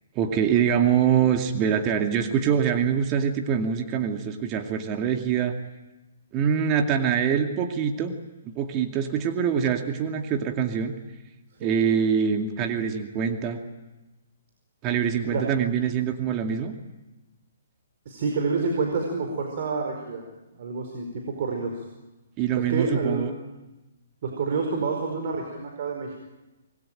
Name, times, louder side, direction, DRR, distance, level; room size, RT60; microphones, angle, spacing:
voice 1, 0.1-5.5 6.3-8.1 8.4-10.9 11.6-13.6 14.8-16.7 22.4-23.3, right 7 dB, 25° right, 4 dB, 2.3 m, -24 dB
voice 2, 18.0-20.2 20.5-21.7 22.6-23.3 24.2-26.2, right 4 dB, 50° right, 2 dB, 4.8 m, -28 dB
26.5 x 21.0 x 9.1 m, 1.1 s
figure-of-eight pair, 130°, 0 cm